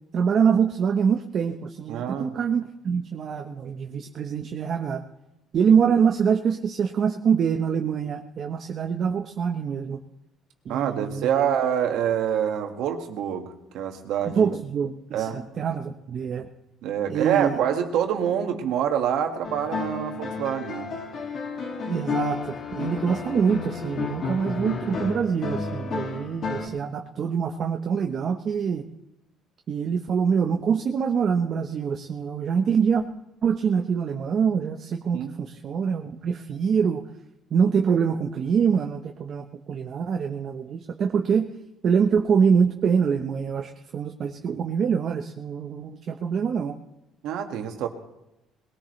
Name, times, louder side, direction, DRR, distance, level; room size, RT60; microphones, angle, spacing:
voice 1, 0.1-5.0 5.5-10.0 10.6-11.4 14.2-16.5 17.1-17.6 21.9-28.8 29.7-33.0 33.4-37.0 37.5-41.5 41.8-46.8, right 6 dB, 45° right, 4 dB, 1.0 m, -25 dB
voice 2, 1.9-2.3 10.7-14.5 15.1-15.4 16.8-20.9 35.1-35.3 47.2-47.9, right 9 dB, 75° right, 4 dB, 1.9 m, -26 dB
sound 1, 19.4-26.7, left 4 dB, 45° left, 2.4 m, -31 dB
21.0 x 18.0 x 3.3 m, 0.91 s
cardioid pair, 120°, 0 cm